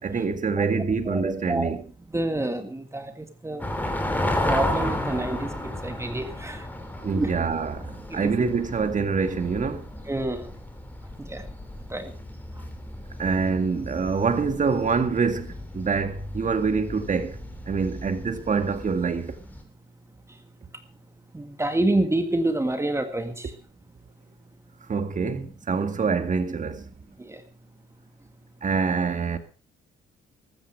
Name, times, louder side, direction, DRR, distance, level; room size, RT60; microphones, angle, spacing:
voice 1, 0.0-1.8 7.0-9.9 13.2-17.4 17.7-19.3 24.9-26.8 28.6-29.4, right 5 dB, 40° right, 2.1 m, -25 dB
voice 2, 1.1-1.7 2.1-3.6 4.4-5.5 5.8-6.7 7.1-7.3 8.2-8.3 10.1-10.5 11.3-11.4 11.9-12.1 21.3-23.5 27.3-27.4, right 1 dB, 15° right, 2.0 m, -27 dB
sound 1, 3.6-19.6, left 1 dB, 10° left, 3.1 m, -33 dB
14.5 x 13.5 x 4.7 m
cardioid pair, 90°, 20 cm